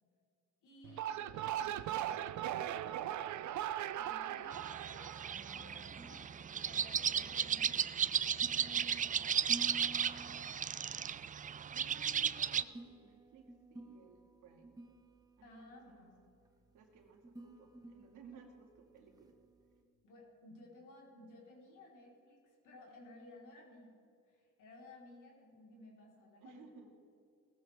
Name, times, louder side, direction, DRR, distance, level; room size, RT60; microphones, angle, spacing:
voice 1, 0.6-2.4 3.9-5.3 5.5-8.9 9.9-10.8 15.4-16.3 20.0-23.9 24.3-26.6, left 2 dB, 80° left, -2 dB, 4.4 m, -57 dB
sound 1, 0.8-6.2, right 11 dB, 70° right, 0.6 m, -39 dB
sound 2, 3.7-19.8, right 1 dB, 10° right, 1.3 m, -55 dB
sound 3, 4.5-12.6, right 8 dB, 25° right, 0.3 m, -35 dB
voice 2, 8.6-9.9 11.7-14.8 15.4-16.1 16.7-19.3 26.4-26.9, right 5 dB, 90° right, 2 dB, 2.3 m, -59 dB
18.0 x 14.5 x 3.6 m, 2.5 s
cardioid pair, 90°, 30 cm